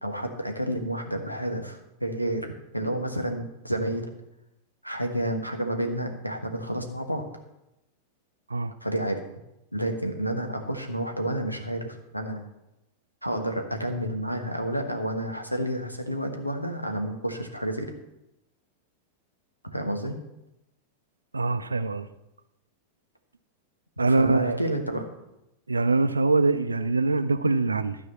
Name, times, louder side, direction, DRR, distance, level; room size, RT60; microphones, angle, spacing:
voice 1, 0.0-4.1 4.8-7.3 8.8-9.2 9.7-12.4 13.2-17.9 19.6-20.2 24.0-25.1, right 1 dB, 90° left, 5 dB, 1.3 m, -30 dB
voice 2, 21.3-22.1 24.0-24.6 25.7-28.0, right 3 dB, 80° right, 11 dB, 0.6 m, -23 dB
12.5 x 4.9 x 7.1 m, 0.90 s
figure-of-eight pair, 90°, 0 cm